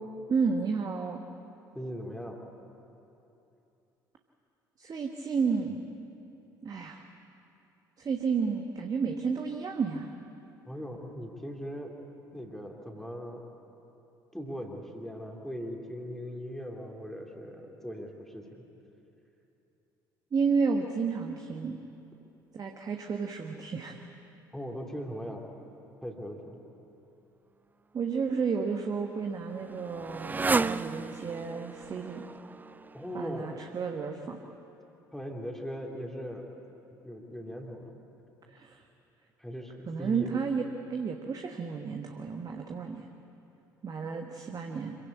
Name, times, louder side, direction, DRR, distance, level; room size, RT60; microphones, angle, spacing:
voice 1, 0.3-1.2 4.8-5.8 6.6-7.1 8.0-10.1 20.3-21.8 22.5-24.0 27.9-32.2 33.1-34.4 38.5-38.9 39.9-43.1 43.8-45.0, right 5 dB, 35° right, 3 dB, 1.4 m, -31 dB
voice 2, 1.7-2.4 10.7-12.0 12.3-13.4 14.3-18.6 24.5-25.5 26.0-26.6 32.9-33.7 35.1-36.5 37.0-37.9 39.4-40.3, equal, 5° left, 1 dB, 2.8 m, -39 dB
Motorcycle, 28.4-33.8, right 4 dB, 15° right, 0.4 m, -34 dB
25.0 x 16.5 x 8.5 m, 2.9 s
figure-of-eight pair, 55°, 11 cm